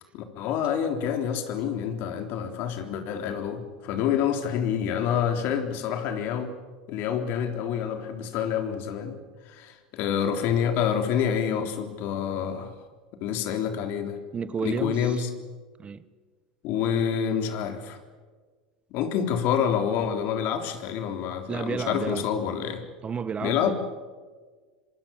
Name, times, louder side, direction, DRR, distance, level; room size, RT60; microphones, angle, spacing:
voice 1, 0.1-6.5 6.9-9.1 9.5-12.7 13.2-14.2 14.6-15.3 16.6-18.0 18.9-22.8 23.4-23.7, left 8 dB, 55° left, 3.5 m, -27 dB
voice 2, 14.3-15.2 15.8-16.0 21.5-22.3 23.0-23.7, right 6 dB, 25° right, 1.1 m, -31 dB
26.0 x 25.0 x 7.1 m
hypercardioid pair, 80°, 4 cm